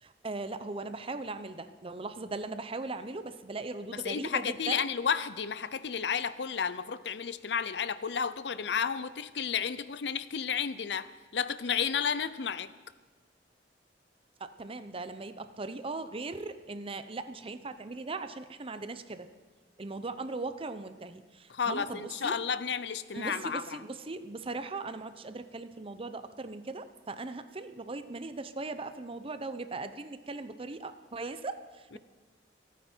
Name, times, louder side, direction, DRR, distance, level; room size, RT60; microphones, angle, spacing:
voice 1, 0.0-4.8 14.4-19.3 19.8-22.4 23.1-32.0, right 3 dB, 35° right, 11 dB, 0.7 m, -39 dB
voice 2, 3.8-12.7 21.5-23.9 31.9-32.0, left 7 dB, 75° left, 15 dB, 0.6 m, -32 dB
26.5 x 9.3 x 4.5 m, 1.3 s
head